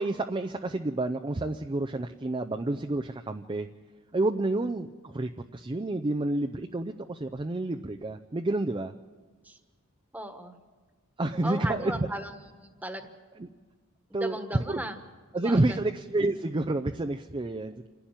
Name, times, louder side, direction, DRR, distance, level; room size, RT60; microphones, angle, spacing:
voice 1, 0.0-3.7 4.1-8.9 11.2-12.1 13.4-13.5 14.1-14.4 14.7-14.8 15.3-17.8, right 2 dB, 25° right, 4 dB, 0.5 m, -29 dB
voice 2, 10.1-10.6 11.4-12.3 12.6-13.1 14.1-15.0 15.3-15.8, right 1 dB, 5° right, 7 dB, 1.5 m, -36 dB
27.5 x 11.5 x 8.9 m, 1.4 s
head